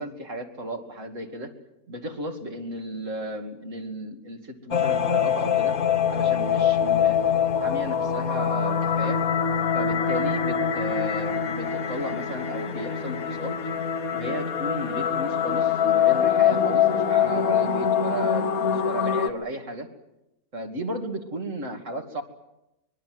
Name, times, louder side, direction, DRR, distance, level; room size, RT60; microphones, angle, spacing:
voice 1, 0.0-1.5 1.9-5.8 6.1-7.2 7.6-9.2 9.7-19.9 20.5-22.2, right 1 dB, 55° right, 5 dB, 2.8 m, -34 dB
sound 1, 4.7-19.3, left 8 dB, 70° left, 1.6 m, -24 dB
25.0 x 22.0 x 7.8 m, 0.92 s
omnidirectional pair, 1.6 m